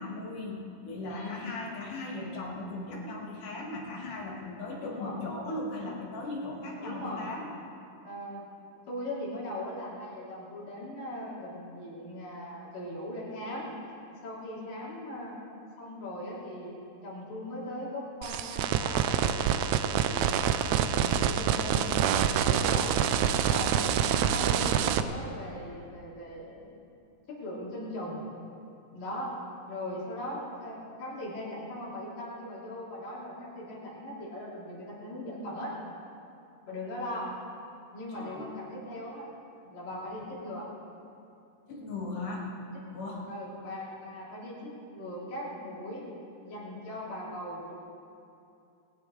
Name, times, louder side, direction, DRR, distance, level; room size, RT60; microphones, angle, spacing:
voice 1, 0.0-7.5 38.1-38.5 39.9-40.2 41.7-42.5 42.9-43.3, left 2 dB, 75° left, -3 dB, 3.5 m, -38 dB
voice 2, 1.1-1.5 4.8-5.2 6.8-7.3 8.0-8.4 8.9-13.7 14.2-15.4 15.8-16.7 17.0-20.3 20.7-22.9 23.5-26.8 27.3-28.2 28.9-29.3 29.7-35.8 36.7-37.3 37.9-39.3 39.7-40.7 43.3-46.0 46.4-47.8, left 1 dB, 90° left, -7 dB, 5.0 m, -39 dB
sound 1, 18.2-25.0, right 9 dB, 90° right, 1.6 m, -26 dB
19.5 x 16.5 x 3.2 m, 2.6 s
omnidirectional pair, 3.8 m